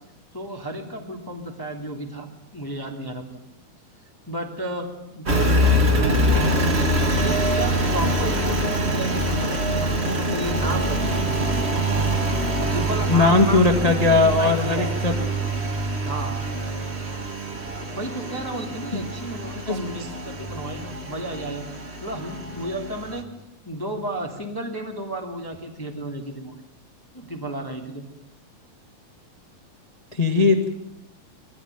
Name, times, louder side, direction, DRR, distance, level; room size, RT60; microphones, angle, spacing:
voice 1, 0.3-3.3 4.3-4.9 5.1-11.7 12.6-14.9 16.0-16.4 17.9-21.6 22.0-23.3 23.6-26.5 27.1-28.0, right 1 dB, 5° left, 1 dB, 2.1 m, -32 dB
Engine, 5.3-23.2, right 1 dB, 25° right, 1.4 m, -24 dB
voice 2, 13.1-15.1 18.9-19.0 19.7-19.8 30.1-30.7, left 3 dB, 30° left, 3 dB, 0.7 m, -19 dB
22.0 x 15.5 x 9.2 m, 0.84 s
omnidirectional pair, 4.1 m